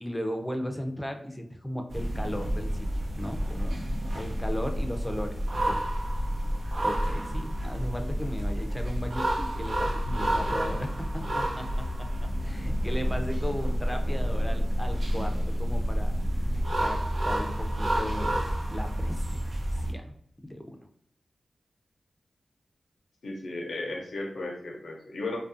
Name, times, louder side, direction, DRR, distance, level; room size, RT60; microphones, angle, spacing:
voice 1, 0.0-3.8 4.1-5.4 5.7-5.8 6.8-16.2 16.8-19.5 19.9-20.1 20.4-20.7, equal, 10° left, 5 dB, 0.5 m, -36 dB
sound 1, 1.9-19.9, equal, 70° right, 0.8 m, -30 dB
sound 2, 12.5-17.4, equal, 50° right, 1.1 m, -31 dB
voice 2, 23.2-25.4, left 2 dB, 75° left, 0 dB, 0.6 m, -35 dB
2.4 x 2.3 x 2.5 m, 0.70 s
cardioid pair, 50°, 0 cm